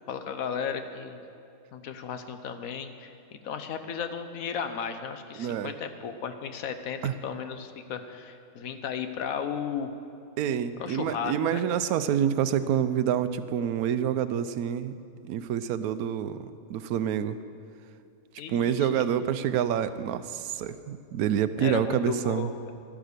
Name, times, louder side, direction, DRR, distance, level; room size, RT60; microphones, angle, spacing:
voice 1, 0.1-1.2 1.7-9.9 10.8-11.6 18.4-19.0 21.6-22.5, left 7 dB, 75° left, 8 dB, 1.2 m, -35 dB
voice 2, 5.3-5.7 7.0-7.2 10.4-14.9 15.3-17.4 18.5-22.5, right 9 dB, 85° right, 13 dB, 1.1 m, -27 dB
11.5 x 10.0 x 6.6 m, 2.4 s
omnidirectional pair, 1.5 m